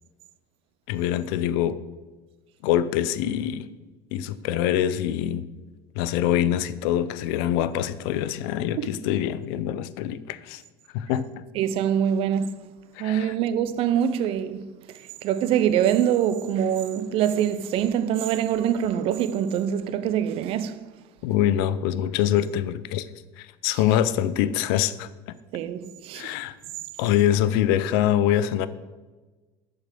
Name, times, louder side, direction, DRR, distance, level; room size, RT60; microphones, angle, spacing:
voice 1, 0.9-1.8 2.6-3.7 4.1-5.5 6.0-10.6 10.9-11.3 13.0-13.3 21.2-23.1 23.4-25.1 26.1-26.5 27.0-28.7, left 11 dB, 80° left, 0.5 m, -24 dB
voice 2, 11.6-12.6 13.0-14.7 15.2-20.8 25.5-26.3, right 9 dB, 55° right, 0.5 m, -24 dB
6.9 x 5.2 x 6.6 m
cardioid pair, 135°, 12 cm